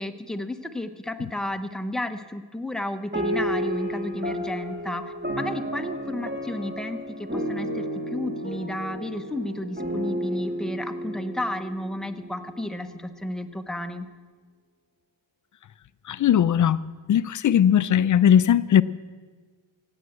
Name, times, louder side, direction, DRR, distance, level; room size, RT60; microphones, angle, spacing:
voice 1, 0.0-14.1, left 1 dB, ahead, 6 dB, 0.7 m, -32 dB
sound 1, 3.1-12.9, equal, 20° right, 1.9 m, -32 dB
voice 2, 16.1-16.8 17.1-18.8, left 9 dB, 40° left, 16 dB, 0.4 m, -19 dB
16.0 x 9.6 x 7.9 m, 1.5 s
cardioid pair, 125°, 48 cm